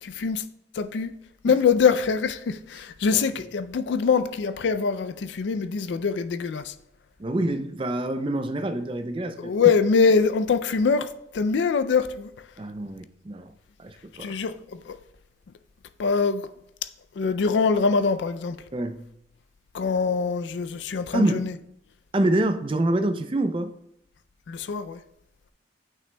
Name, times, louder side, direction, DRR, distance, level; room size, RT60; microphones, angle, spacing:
voice 1, 0.0-0.4 0.7-1.1 1.4-6.7 9.4-12.3 14.2-15.0 16.0-16.5 17.2-18.6 19.7-21.5 24.5-25.0, left 5 dB, 70° left, 0.4 m, -23 dB
voice 2, 7.2-9.5 12.6-13.5 13.8-14.3 18.7-19.0 21.1-21.5 22.1-23.7, right 1 dB, 25° right, 0.4 m, -26 dB
9.2 x 6.1 x 2.2 m
head